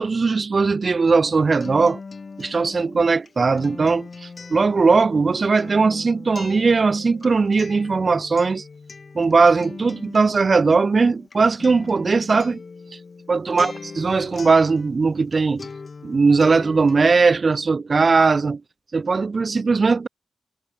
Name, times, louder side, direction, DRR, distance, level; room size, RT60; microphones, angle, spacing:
voice 1, 0.0-2.0 2.4-8.6 9.1-12.6 13.3-15.7 16.0-18.6 18.9-20.1, right 4 dB, 35° right, 0.7 m, -19 dB
Acoustic guitar, 1.1-15.3 15.6-17.1, left 4 dB, 40° left, 3.0 m, -40 dB
wide cardioid pair, 155°, 0 cm